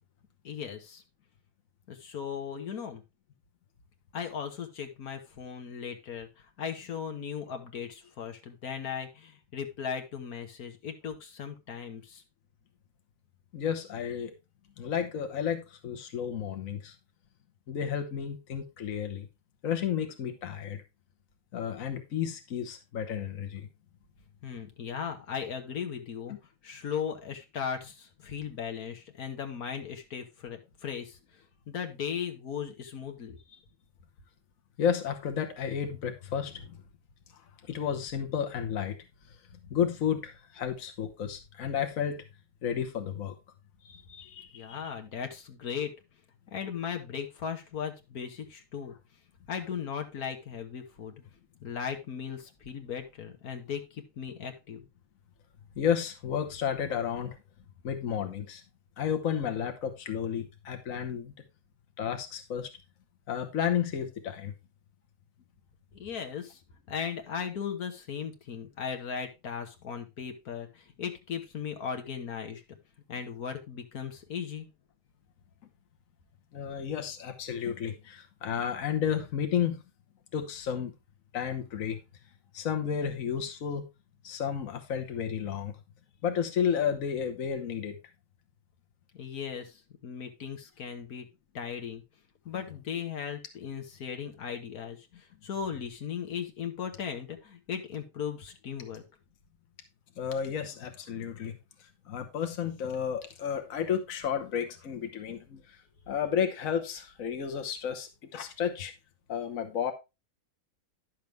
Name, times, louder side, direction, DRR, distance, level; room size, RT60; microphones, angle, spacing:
voice 1, 0.4-1.0 1.9-3.0 4.1-6.3 6.6-12.2 24.4-26.3 26.6-31.2 31.7-33.4 44.5-45.9 46.5-48.9 49.5-51.1 51.6-54.9 65.9-66.6 66.9-72.6 73.1-74.7 89.2-89.7 90.0-91.3 91.5-92.0 92.4-95.0 95.4-99.0, left 7 dB, 80° left, 1.7 m, -37 dB
voice 2, 13.5-14.3 14.8-16.9 17.7-19.3 19.6-20.8 21.5-23.7 34.8-36.8 37.7-39.0 39.7-42.2 42.6-43.3 43.8-44.8 55.8-57.3 57.8-58.6 59.0-61.3 62.0-62.7 63.3-64.5 76.5-79.8 80.3-80.9 81.3-82.0 82.5-83.8 84.2-85.7 86.2-88.0 92.5-92.6 100.2-101.5 102.1-105.8 106.1-108.9 109.3-109.9, left 8 dB, 65° left, 1.5 m, -32 dB
10.5 x 6.6 x 3.4 m
omnidirectional pair, 1.5 m